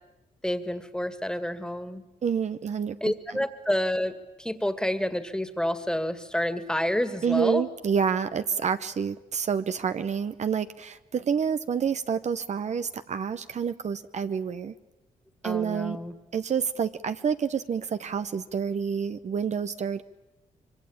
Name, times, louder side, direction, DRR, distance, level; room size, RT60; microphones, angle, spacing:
voice 1, 0.4-2.0 3.0-4.1 4.4-7.6 15.4-16.1, left 1 dB, 5° left, 10 dB, 2.2 m, -29 dB
voice 2, 2.2-3.1 7.2-14.7 15.4-16.0 16.3-20.0, right 7 dB, 55° right, 10 dB, 0.9 m, -28 dB
25.5 x 23.5 x 8.8 m, 1.0 s
cardioid pair, 85°, 14 cm